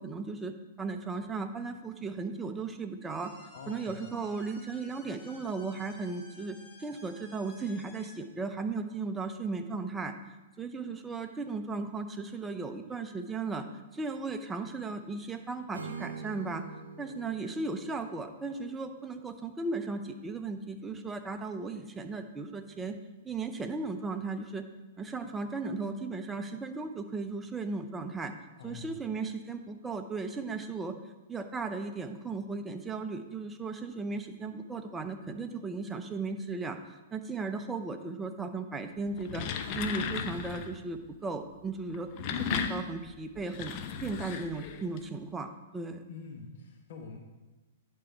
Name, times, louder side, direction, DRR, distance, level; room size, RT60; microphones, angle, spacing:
voice 1, 0.0-3.3 3.7-10.1 10.6-13.6 13.9-16.6 17.0-23.0 23.2-24.6 25.0-28.3 28.6-30.9 31.3-39.4 39.7-46.0, right 3 dB, 15° right, 6 dB, 0.6 m, -36 dB
sound 1, 3.1-8.2, left 2 dB, 25° left, 1.7 m, -54 dB
voice 2, 3.5-4.1 28.6-28.9 46.1-47.2, left 4 dB, 60° left, 2 dB, 1.0 m, -45 dB
Acoustic guitar / Strum, 15.7-19.7, right 4 dB, 90° right, 0.7 m, -45 dB
sound 2, 39.1-40.8 41.9-45.0, left 7 dB, 40° left, 0.6 m, -35 dB
11.0 x 3.8 x 4.5 m, 1.1 s
hypercardioid pair, 115°, 0 cm